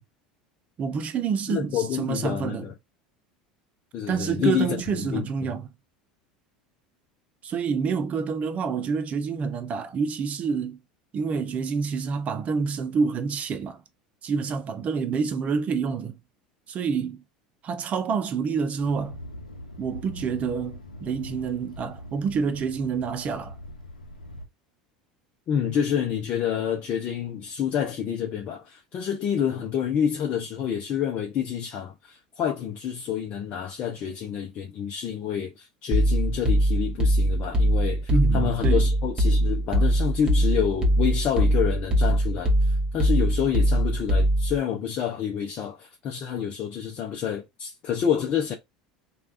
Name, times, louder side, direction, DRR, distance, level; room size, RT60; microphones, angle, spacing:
voice 1, 0.8-2.7 4.1-5.7 7.4-10.8 11.1-13.8 14.2-16.2 16.7-17.2 17.6-19.2 19.8-23.5 38.1-38.9, right 5 dB, 35° right, 0.7 m, -27 dB
voice 2, 1.5-2.7 3.9-5.5 25.5-48.5, left 8 dB, 45° left, 0.7 m, -28 dB
Thunder, 18.8-24.5, left 1 dB, 90° left, 0.7 m, -42 dB
sound 1, 35.9-44.6, right 1 dB, 20° right, 1.0 m, -22 dB
3.3 x 2.4 x 2.5 m
figure-of-eight pair, 75°, 4 cm